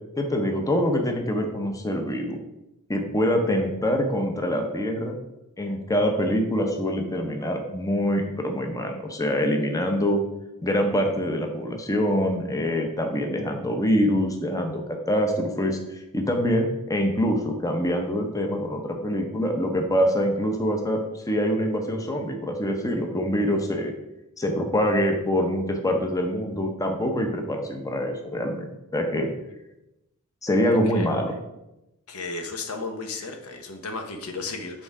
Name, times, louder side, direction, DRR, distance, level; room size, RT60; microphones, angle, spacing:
voice 1, 0.2-2.4 2.9-5.2 5.6-10.2 10.6-23.9 24.4-29.3 30.4-31.3, equal, 15° left, 3 dB, 0.7 m, -25 dB
voice 2, 31.0-31.4 32.1-34.8, left 3 dB, 75° left, 5 dB, 0.9 m, -34 dB
7.7 x 3.6 x 4.8 m, 0.92 s
head